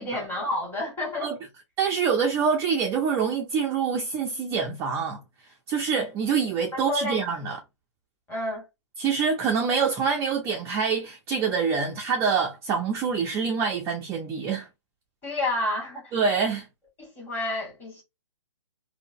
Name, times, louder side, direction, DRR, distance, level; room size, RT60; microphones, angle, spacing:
voice 1, 0.0-1.3 6.7-7.2 8.3-8.7 15.2-16.1 17.0-18.0, left 1 dB, 10° left, 1.4 m, -30 dB
voice 2, 1.8-5.2 5.7-7.6 9.0-14.7 16.1-16.7, right 6 dB, 15° right, 0.4 m, -25 dB
3.7 x 2.1 x 2.5 m
hypercardioid pair, 135°, 16 cm